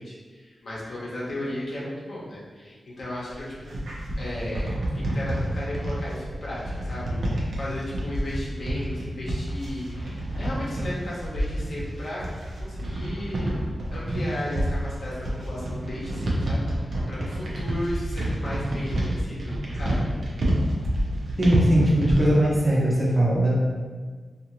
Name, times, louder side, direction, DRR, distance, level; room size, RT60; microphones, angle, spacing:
voice 1, 0.0-3.8 4.2-12.2 12.6-13.6 13.9-20.1, left 1 dB, 65° left, -7 dB, 0.8 m, -35 dB
sound 1, 3.4-22.4, right 1 dB, 75° right, 0.6 m, -28 dB
voice 2, 21.4-23.5, right 1 dB, 35° right, -5 dB, 0.9 m, -20 dB
2.6 x 2.4 x 2.9 m, 1.5 s
wide cardioid pair, 85°, 0 cm